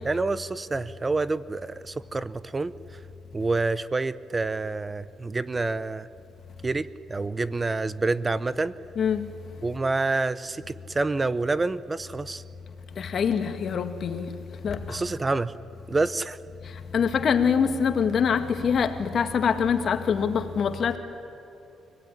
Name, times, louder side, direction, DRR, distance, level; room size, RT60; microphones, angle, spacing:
voice 1, 0.0-2.7 3.3-6.1 6.6-8.7 9.6-12.4 14.9-15.5 15.9-16.4, right 3 dB, 25° right, 0.7 m, -27 dB
voice 2, 9.0-9.4 13.0-14.3 14.6-15.0 16.9-21.0, left 6 dB, 55° left, 1.9 m, -24 dB
25.0 x 18.5 x 10.0 m
cardioid pair, 90°, 0 cm